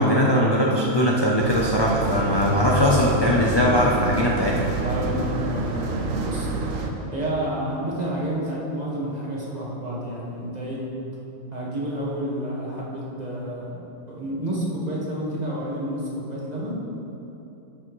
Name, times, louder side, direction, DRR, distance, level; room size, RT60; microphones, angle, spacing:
voice 1, 0.0-4.6, equal, 30° left, -4 dB, 0.5 m, -20 dB
vent heavy ventilation metal rattle closeup underneath, 1.4-6.9, right 3 dB, 70° right, 1.1 m, -28 dB
voice 2, 4.8-6.5 7.1-10.8 11.5-13.7 14.1-16.7, right 1 dB, 30° right, -6 dB, 1.6 m, -29 dB
12.5 x 6.1 x 3.1 m, 2.9 s
omnidirectional pair, 1.5 m